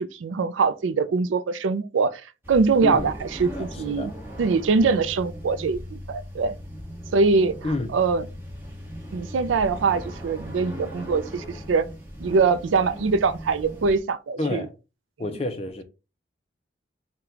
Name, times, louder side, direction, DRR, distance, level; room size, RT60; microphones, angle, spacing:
voice 1, 0.0-2.2 2.5-4.1 4.4-6.6 7.1-7.6 7.9-8.3 9.1-11.9 12.2-14.7, right 4 dB, 80° right, 0.4 m, -23 dB
sound 1, 2.4-14.0, equal, 10° right, 1.0 m, -38 dB
voice 2, 2.8-3.1 3.5-4.1 7.6-7.9 14.4-14.7 15.2-15.8, left 2 dB, 30° left, 0.5 m, -29 dB
3.9 x 2.2 x 4.3 m
head